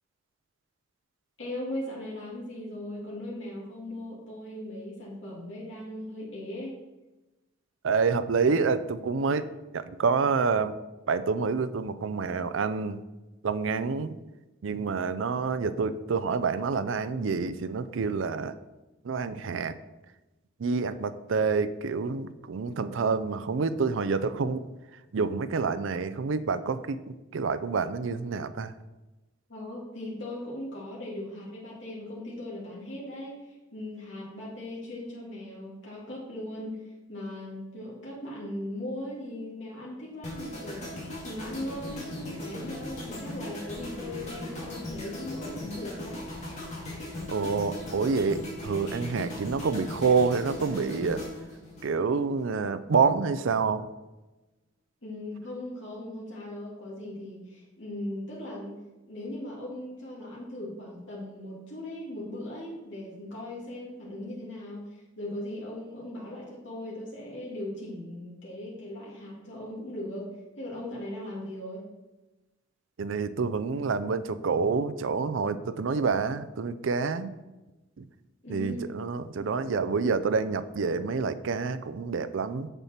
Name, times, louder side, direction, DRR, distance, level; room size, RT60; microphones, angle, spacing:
voice 1, 1.4-6.8 29.5-46.2 55.0-71.8 78.4-78.9, left 1 dB, 65° left, -5 dB, 2.1 m, -38 dB
voice 2, 7.8-9.5 9.7-10.7 11.1-13.0 13.4-14.1 14.6-18.5 19.0-19.8 20.6-24.7 25.1-27.0 27.3-28.7 47.3-51.2 51.8-53.8 73.0-77.3 78.0-78.1 78.5-82.7, right 5 dB, 75° right, 13 dB, 0.5 m, -27 dB
sound 1, 40.2-52.4 52.7-53.0, left 1 dB, 35° left, 2.5 m, -38 dB
7.3 x 6.8 x 4.3 m, 1.1 s
head